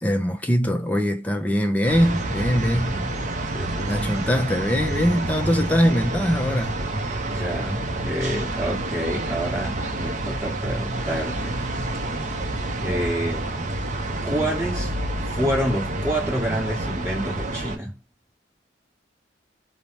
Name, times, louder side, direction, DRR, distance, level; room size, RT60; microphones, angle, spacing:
voice 1, 0.0-3.0 3.9-6.8, equal, 10° left, 0.5 m, -22 dB
sound 1, 1.8-17.8, right 2 dB, 40° right, 0.5 m, -28 dB
voice 2, 2.7-3.2 3.5-4.1 7.2-11.6 12.8-13.5 14.2-14.9 15.3-18.0, right 1 dB, 15° right, 1.2 m, -28 dB
2.7 x 2.0 x 3.1 m
head